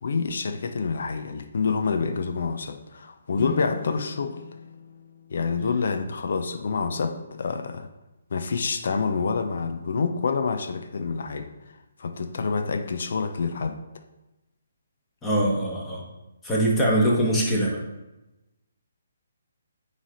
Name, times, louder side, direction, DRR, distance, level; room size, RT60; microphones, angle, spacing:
voice 1, 0.0-4.4 5.3-7.9 8.3-11.5 12.0-13.8, left 5 dB, 60° left, 7 dB, 0.6 m, -27 dB
sound 1, 3.3-6.6, left 4 dB, 35° left, 1.5 m, -41 dB
voice 2, 15.2-16.0 16.4-17.8, right 1 dB, 10° left, -4 dB, 1.4 m, -22 dB
8.8 x 3.3 x 3.9 m, 0.99 s
figure-of-eight pair, 140°, 0 cm